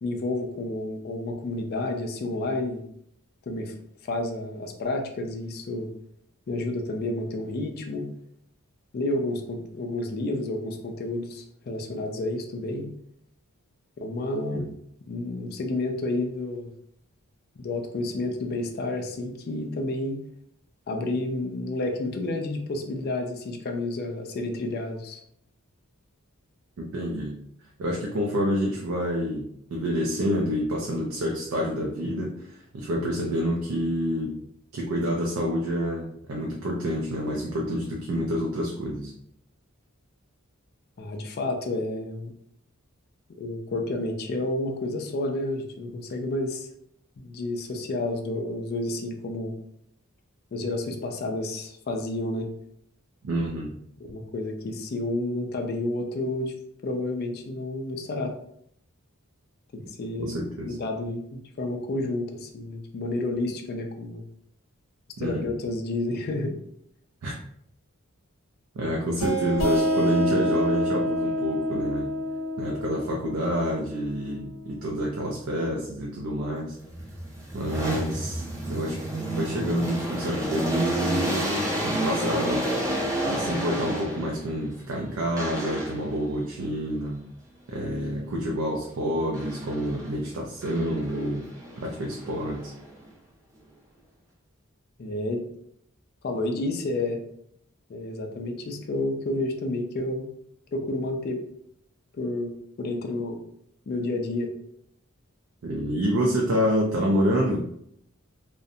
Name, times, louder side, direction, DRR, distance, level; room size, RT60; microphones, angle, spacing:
voice 1, 0.0-2.8 3.5-3.7 4.0-5.9 6.5-8.1 8.9-12.9 14.0-14.6 15.1-16.7 17.6-20.2 20.9-25.2 41.0-42.3 43.4-46.7 47.2-49.5 50.5-52.5 54.0-56.5 56.8-58.3 59.7-60.4 60.6-61.2 61.6-64.2 65.2-66.5 95.0-95.4 96.2-97.2 97.9-100.3 100.7-101.4 102.1-103.4 103.9-104.5, left 2 dB, 45° left, 3 dB, 0.3 m, -30 dB
voice 2, 26.8-27.4 27.8-29.4 29.7-34.4 34.7-39.1 53.2-53.7 60.2-60.8 65.2-65.5 67.2-67.4 68.7-72.1 72.6-76.8 77.5-79.0 79.4-81.5 81.8-82.6 83.2-87.2 87.7-91.4 91.8-92.7 105.6-107.6, equal, 70° right, -1 dB, 0.4 m, -28 dB
sound 1, 69.2-74.6, equal, 85° left, 0.6 m, -27 dB
sound 2, 76.8-84.5 85.4-86.2 89.3-90.2 90.6-93.0, right 1 dB, 15° right, 0.6 m, -30 dB
2.5 x 2.1 x 2.6 m, 0.70 s
head